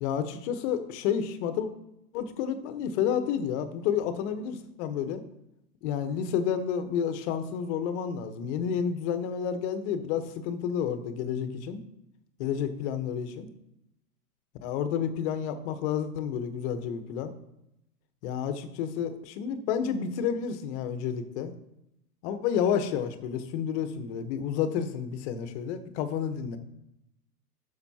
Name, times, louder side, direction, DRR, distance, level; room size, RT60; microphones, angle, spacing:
voice 1, 0.0-1.7 2.1-5.2 5.8-11.8 12.4-13.5 14.6-17.3 18.2-21.5 22.2-26.6, left 8 dB, 45° left, 9 dB, 1.1 m, -30 dB
11.5 x 6.8 x 2.8 m, 0.85 s
hypercardioid pair, 110°, 46 cm